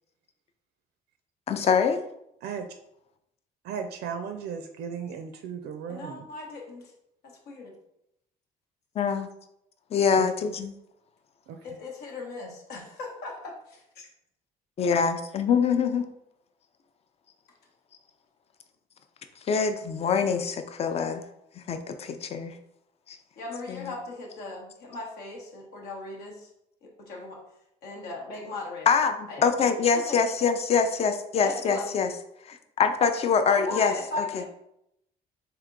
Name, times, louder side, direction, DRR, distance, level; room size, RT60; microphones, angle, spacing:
voice 1, 1.5-2.0 9.0-9.3 9.9-10.7 14.8-16.1 19.5-21.2 21.6-22.6 23.1-23.2 23.8-23.9 28.9-29.1 29.4-32.1 32.4-34.2, left 6 dB, 35° left, 7 dB, 0.4 m, -24 dB
voice 2, 3.6-6.3 10.2-10.3 11.5-11.6, right 7 dB, 75° right, 6 dB, 0.4 m, -36 dB
voice 3, 5.9-6.9 7.2-7.7 11.6-14.1 23.4-26.5 26.8-27.4 27.8-28.9 29.3-29.4 29.9-30.2 31.4-31.9 33.5-34.4, left 2 dB, 75° left, -1 dB, 0.9 m, -38 dB
3.4 x 2.8 x 3.7 m, 0.79 s
cardioid pair, 110°, 17 cm